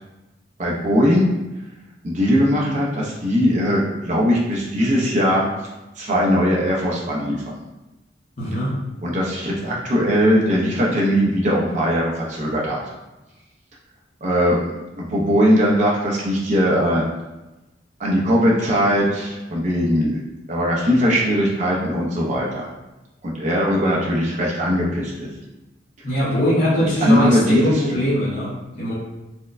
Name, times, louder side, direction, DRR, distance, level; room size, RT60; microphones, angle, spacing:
voice 1, 0.6-1.3 2.0-5.5 6.0-7.4 9.0-12.8 14.2-17.0 18.0-20.2 20.5-22.7 23.2-25.3 26.8-27.8, equal, 40° right, -4 dB, 0.5 m, -20 dB
voice 2, 8.4-8.7 26.0-28.9, equal, 45° left, -8 dB, 0.7 m, -21 dB
4.2 x 2.1 x 2.4 m, 1.0 s
head